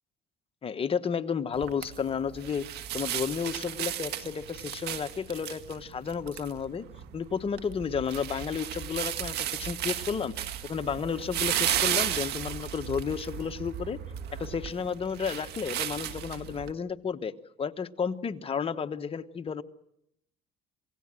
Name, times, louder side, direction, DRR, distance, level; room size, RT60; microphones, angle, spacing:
voice 1, 0.6-6.8 7.1-10.3 10.6-14.0 14.4-19.6, left 6 dB, 35° left, 9 dB, 1.1 m, -32 dB
sound 1, 1.5-16.7, right 11 dB, 80° right, 1.9 m, -34 dB
27.0 x 17.5 x 7.6 m, 0.77 s
cardioid pair, 110°, 17 cm